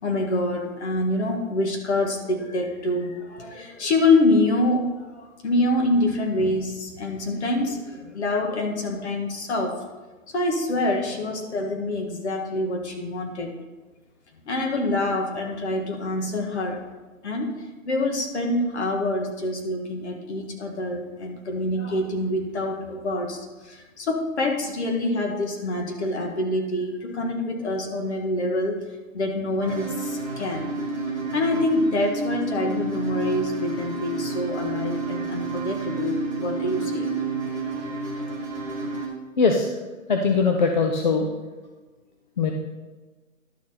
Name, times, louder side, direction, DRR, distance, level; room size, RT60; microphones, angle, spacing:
voice 1, 0.0-9.8 10.3-13.5 14.5-16.8 17.2-17.5 17.9-28.9 29.1-30.7 31.3-37.1, left 2 dB, 55° left, 3 dB, 1.8 m, -26 dB
sound 1, 29.6-39.1, right 3 dB, 15° left, 2.5 m, -30 dB
voice 2, 39.4-39.7 40.1-41.3 42.4-42.5, left 4 dB, 35° left, 3 dB, 0.6 m, -21 dB
11.5 x 6.5 x 4.2 m, 1.2 s
hypercardioid pair, 165°, 41 cm